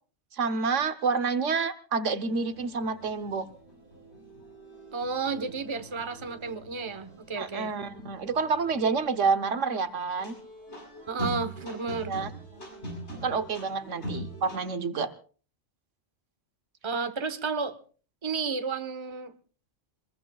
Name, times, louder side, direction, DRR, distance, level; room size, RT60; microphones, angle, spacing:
voice 1, 0.3-3.5 7.4-10.3 12.1-12.3 13.2-15.1, right 5 dB, 70° right, 10 dB, 1.3 m, -28 dB
sound 1, 2.2-14.6, equal, 60° left, 7.9 m, -43 dB
voice 2, 4.9-7.7 11.1-12.1 16.8-17.8 18.2-19.3, right 4 dB, 25° right, 10 dB, 1.1 m, -32 dB
26.0 x 21.5 x 2.3 m, 0.40 s
omnidirectional pair, 1.3 m